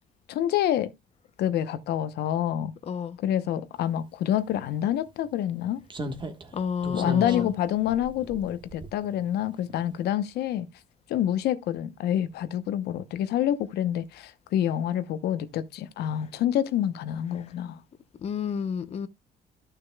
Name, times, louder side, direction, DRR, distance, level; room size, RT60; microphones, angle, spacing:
voice 1, 0.3-0.9 1.4-2.7 3.2-5.8 6.9-10.7 11.1-17.8, left 11 dB, 75° left, 0.8 m, -27 dB
voice 2, 2.9-3.2 6.5-7.5 18.2-19.1, left 6 dB, 40° left, 0.6 m, -30 dB
Slam, 4.5-4.6 5.9-9.4 9.7-9.9, right 1 dB, 30° right, 1.3 m, -38 dB
13.5 x 6.5 x 2.2 m
cardioid pair, 110°, 17 cm